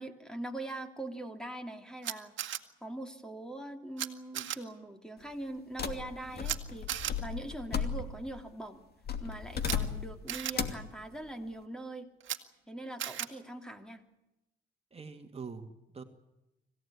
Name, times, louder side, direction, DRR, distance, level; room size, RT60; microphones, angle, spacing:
voice 1, 0.0-2.3 2.8-8.8 9.2-12.1 12.7-14.0, right 2 dB, 5° left, 6 dB, 3.0 m, -42 dB
Camera, 2.0-2.6 4.0-4.1 4.3-4.6 6.4-6.6 6.9-7.1 9.6-9.8 10.3-10.5 12.2-12.4 13.0-13.3, right 11 dB, 70° right, 1.7 m, -35 dB
sound 1, 5.8-8.4 9.1-10.2 10.5-10.9, left 7 dB, 50° left, 2.7 m, -35 dB
voice 2, 14.9-16.0, right 5 dB, 30° right, 5 dB, 2.3 m, -44 dB
26.0 x 16.0 x 9.8 m, 0.95 s
cardioid pair, 90°, 20 cm